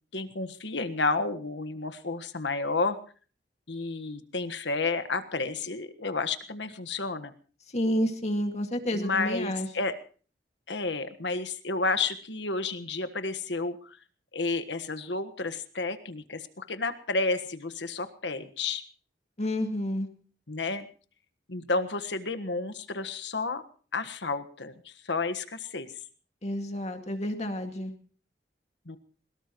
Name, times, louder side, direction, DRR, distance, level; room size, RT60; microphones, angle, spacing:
voice 1, 0.1-3.0 3.7-7.3 8.9-10.0 10.7-14.0 14.3-18.8 20.5-20.9 21.5-23.6 23.9-25.9 28.8-29.0, left 3 dB, 90° left, 10 dB, 1.5 m, -31 dB
voice 2, 7.7-9.7 19.4-20.1 26.4-27.9, equal, 40° left, 5 dB, 2.1 m, -29 dB
23.0 x 20.5 x 3.1 m, 0.41 s
head